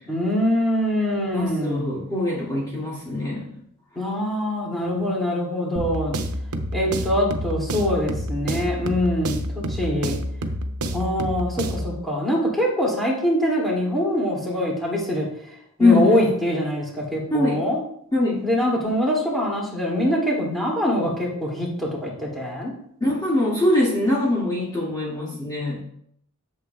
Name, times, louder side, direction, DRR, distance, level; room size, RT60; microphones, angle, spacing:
voice 1, 0.1-1.9 3.9-6.2 6.7-10.2 10.9-15.3 15.8-17.8 18.4-22.7, equal, ahead, -4 dB, 2.5 m, -24 dB
voice 2, 1.3-3.5 4.9-5.0 15.8-16.3 17.3-17.6 18.1-18.4 23.0-25.8, left 2 dB, 20° left, -7 dB, 2.1 m, -22 dB
sound 1, 5.8-12.0, equal, 85° right, 0.9 m, -28 dB
11.5 x 7.2 x 2.4 m, 0.69 s
head